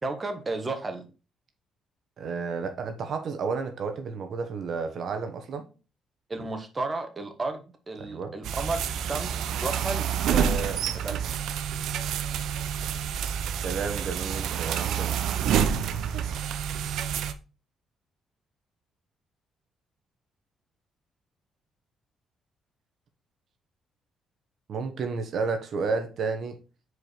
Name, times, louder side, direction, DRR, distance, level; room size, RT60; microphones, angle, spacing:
voice 1, 0.0-1.1 6.3-11.3, right 3 dB, 25° right, 1.5 m, -33 dB
voice 2, 2.2-5.7 8.0-8.3 13.6-15.2 24.7-26.5, right 5 dB, 60° right, 1.2 m, -31 dB
sound 1, 8.4-17.3, right 8 dB, 80° right, 0.6 m, -28 dB
4.8 x 4.7 x 5.1 m
cardioid pair, 90°, 0 cm